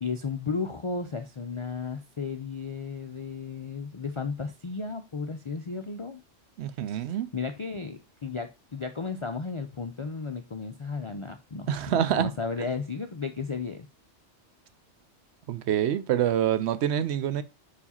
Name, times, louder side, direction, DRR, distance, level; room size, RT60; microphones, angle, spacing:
voice 1, 0.0-6.2 6.9-7.1 7.3-13.9, left 4 dB, 50° left, 0.3 m, -34 dB
voice 2, 6.6-7.3 11.7-12.3 15.5-17.4, right 10 dB, 70° right, 0.8 m, -26 dB
5.1 x 4.7 x 4.2 m
omnidirectional pair, 1.2 m